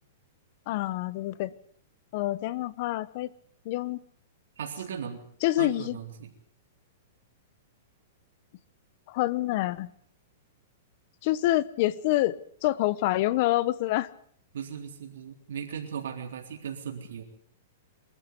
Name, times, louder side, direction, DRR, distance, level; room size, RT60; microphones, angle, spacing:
voice 1, 0.7-1.5 2.1-3.3 3.6-4.0 5.4-6.0 9.1-9.9 11.2-12.4 12.6-14.1, left 16 dB, 45° left, 0.9 m, -26 dB
voice 2, 4.6-5.2 5.6-6.3 14.5-17.2, right 7 dB, 80° right, 3.8 m, -37 dB
23.5 x 14.0 x 8.3 m
hypercardioid pair, 155°, 0 cm